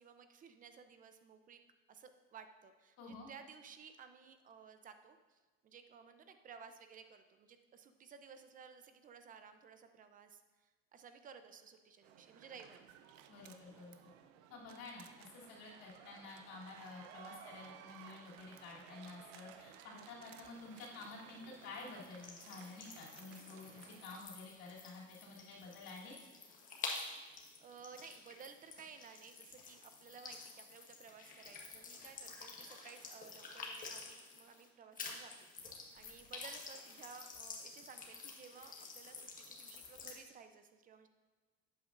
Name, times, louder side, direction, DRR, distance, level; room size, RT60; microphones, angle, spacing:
voice 1, 0.0-1.6 1.9-12.9 23.6-23.8 27.6-41.1, right 6 dB, 30° right, 8 dB, 0.6 m, -56 dB
voice 2, 3.0-3.3 13.3-14.0 14.5-26.2, left 3 dB, 60° left, -5 dB, 3.0 m, -51 dB
sound 1, 12.0-24.2, right 8 dB, 90° right, 0.7 m, -58 dB
sound 2, 20.4-34.7 34.9-40.2, left 4 dB, 30° left, 1.4 m, -50 dB
11.5 x 8.4 x 2.6 m, 1.3 s
cardioid pair, 145°, 29 cm